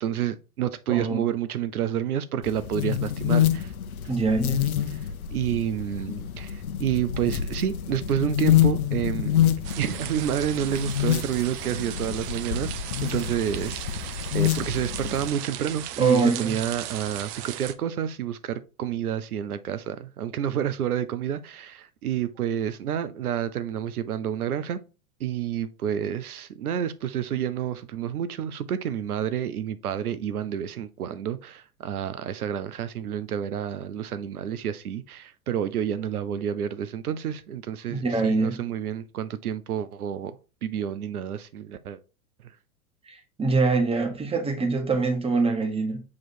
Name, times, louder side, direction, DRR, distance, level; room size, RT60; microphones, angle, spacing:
voice 1, 0.0-3.7 4.9-12.7 13.0-24.8 25.2-42.0, right 10 dB, 75° right, 0.7 m, -29 dB
voice 2, 0.9-1.2 4.1-4.6 16.0-16.6 37.9-38.6 43.1-46.0, right 4 dB, 15° right, 1.3 m, -24 dB
sound 1, 2.4-15.3, left 10 dB, 70° left, 0.9 m, -27 dB
sound 2, 9.6-17.7, right 12 dB, 35° right, 0.6 m, -37 dB
7.3 x 3.0 x 4.2 m
figure-of-eight pair, 95°, 44 cm